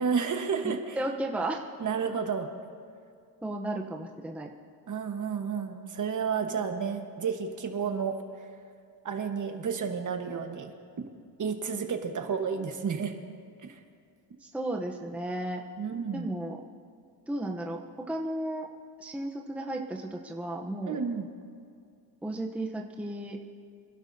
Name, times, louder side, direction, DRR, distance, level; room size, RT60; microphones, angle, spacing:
voice 1, 0.0-1.0 1.8-2.5 4.9-8.2 9.0-10.7 11.4-13.1 15.8-16.3 20.9-21.3, right 6 dB, 45° right, 5 dB, 1.3 m, -31 dB
voice 2, 1.0-1.6 3.4-4.5 14.4-15.6 16.1-16.6 17.3-18.7 19.0-21.0 22.2-23.6, right 1 dB, 5° right, 1 dB, 0.8 m, -34 dB
25.5 x 11.5 x 2.7 m, 2.3 s
cardioid pair, 115°, 44 cm